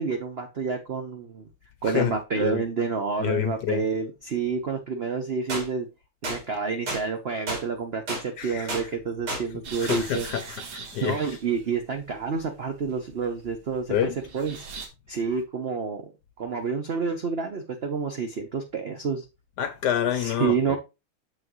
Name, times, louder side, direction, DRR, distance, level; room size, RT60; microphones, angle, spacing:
voice 1, 0.0-1.5 1.8-5.9 6.2-10.5 11.0-14.7 15.1-16.1 16.4-19.2 20.1-20.8, right 5 dB, 55° right, 0.7 m, -29 dB
voice 2, 3.2-3.8 8.4-8.7 9.8-11.2 13.9-14.1 19.6-20.8, left 10 dB, 65° left, 1.1 m, -27 dB
sound 1, 5.5-5.6 6.2-6.4 6.9-7.0 7.5-7.6 8.1-8.2 8.7-8.8 9.3-9.4 9.9-10.0, right 1 dB, 90° right, 3.9 m, -30 dB
sound 2, 9.6-14.9, right 5 dB, 75° right, 2.1 m, -43 dB
7.4 x 6.0 x 3.0 m
omnidirectional pair, 2.3 m